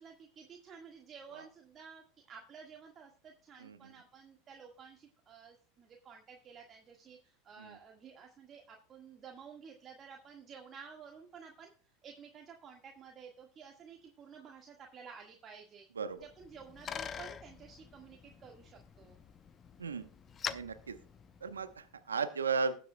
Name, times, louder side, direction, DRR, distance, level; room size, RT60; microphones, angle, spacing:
voice 1, 0.0-15.9 16.2-19.2, right 6 dB, 35° right, 1 dB, 1.6 m, -53 dB
voice 2, 3.6-3.9 7.6-7.8 16.0-16.3 19.8-20.1 20.5-21.0 21.4-22.8, right 5 dB, 90° right, 10 dB, 0.9 m, -36 dB
Bicycle, 16.2-21.9, left 7 dB, 30° left, 0.6 m, -45 dB
20.0 x 7.5 x 2.2 m, 0.40 s
hypercardioid pair, 85°, 0 cm